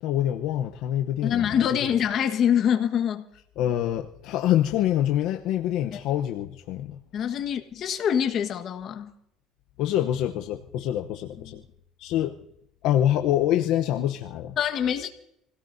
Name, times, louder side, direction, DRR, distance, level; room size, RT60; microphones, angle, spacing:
voice 1, 0.0-1.5 1.8-1.9 3.6-7.0 9.8-11.6 12.0-12.3 12.8-14.6, left 12 dB, 70° left, 0.8 m, -25 dB
voice 2, 1.2-3.3 5.9-6.0 7.1-9.1 11.4-11.6 14.6-15.1, left 9 dB, 45° left, 1.5 m, -25 dB
28.0 x 17.0 x 2.7 m
cardioid pair, 140°, 0 cm